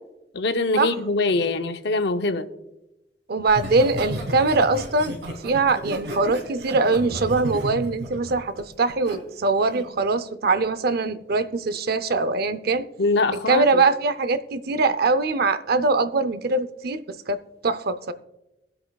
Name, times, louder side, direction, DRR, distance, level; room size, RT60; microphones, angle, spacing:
voice 1, 0.3-2.5 13.0-13.8, left 3 dB, 70° left, 0.7 m, -23 dB
voice 2, 3.3-5.2 5.4-12.8 13.5-17.4 17.6-18.1, right 3 dB, 60° right, 0.6 m, -22 dB
Laughter, 3.5-9.2 9.6-9.9, equal, 90° right, 2.5 m, -33 dB
22.0 x 7.9 x 2.3 m
head